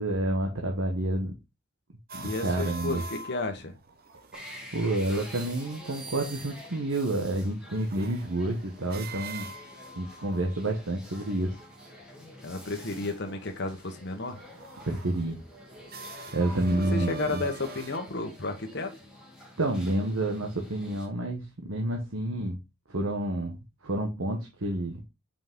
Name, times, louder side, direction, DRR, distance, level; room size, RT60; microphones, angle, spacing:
voice 1, 0.0-1.3 2.1-3.0 4.7-9.5 10.0-11.5 14.9-15.4 16.3-17.4 19.6-22.6 22.9-25.0, right 1 dB, 80° right, 1.2 m, -29 dB
sound 1, 2.1-4.7 5.0-12.1 13.4-13.9 14.2-18.0, right 2 dB, 45° right, 0.8 m, -44 dB
voice 2, 2.2-3.7 12.4-14.4 16.7-18.9, left 2 dB, 55° left, 1.1 m, -32 dB
sound 2, 4.3-21.1, equal, 5° right, 1.7 m, -48 dB
5.7 x 5.1 x 3.6 m
head